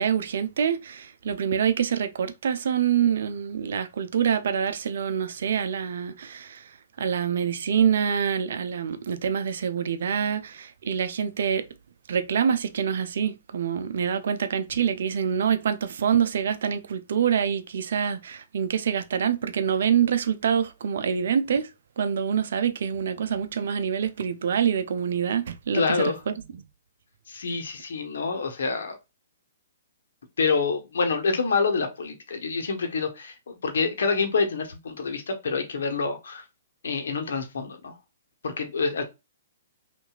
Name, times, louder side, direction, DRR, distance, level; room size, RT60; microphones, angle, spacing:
voice 1, 0.0-6.6 7.0-11.7 12.1-21.7 22.0-25.8 26.3-26.4, right 8 dB, 65° right, 0.6 m, -26 dB
voice 2, 25.7-26.2 27.3-29.0 30.4-36.4 36.8-38.0 38.4-39.0, left 4 dB, 70° left, 1.1 m, -27 dB
5.5 x 2.6 x 2.4 m
figure-of-eight pair, 120°, 0 cm